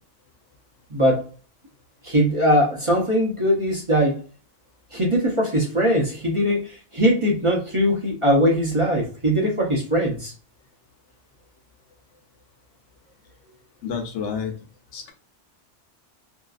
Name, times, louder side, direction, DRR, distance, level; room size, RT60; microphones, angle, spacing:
voice 1, 0.9-1.2 2.0-4.2 4.9-10.3, equal, 35° right, -3 dB, 0.7 m, -21 dB
voice 2, 13.8-14.5 14.9-15.1, left 6 dB, 85° left, 4 dB, 1.0 m, -29 dB
2.7 x 2.4 x 2.4 m, 0.36 s
omnidirectional pair, 1.2 m